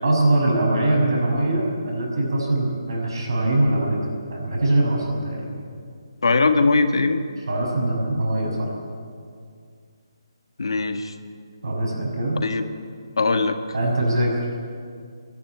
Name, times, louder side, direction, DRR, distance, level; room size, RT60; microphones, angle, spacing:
voice 1, 0.0-4.0 4.3-5.6 7.5-8.7 11.6-12.4 13.7-14.5, right 1 dB, 60° right, 0 dB, 6.3 m, -22 dB
voice 2, 6.2-7.2 10.6-11.1 12.4-12.6 13.2-13.6, left 3 dB, 75° left, 7 dB, 1.6 m, -20 dB
26.5 x 11.0 x 9.2 m, 2.2 s
hypercardioid pair, 180°, 3 cm